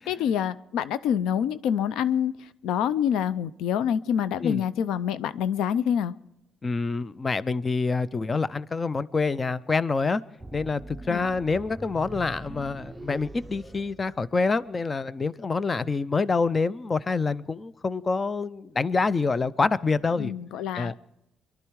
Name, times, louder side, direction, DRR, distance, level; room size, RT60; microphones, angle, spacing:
voice 1, 0.1-2.3 2.6-6.1 11.1-11.3 20.2-21.0, left 9 dB, 90° left, 0.4 m, -26 dB
voice 2, 6.6-10.2 10.5-20.3 20.7-20.9, left 4 dB, 30° left, 0.5 m, -26 dB
sound 1, 10.4-14.7, right 1 dB, 10° right, 0.7 m, -42 dB
24.5 x 11.5 x 4.7 m
cardioid pair, 90°, 0 cm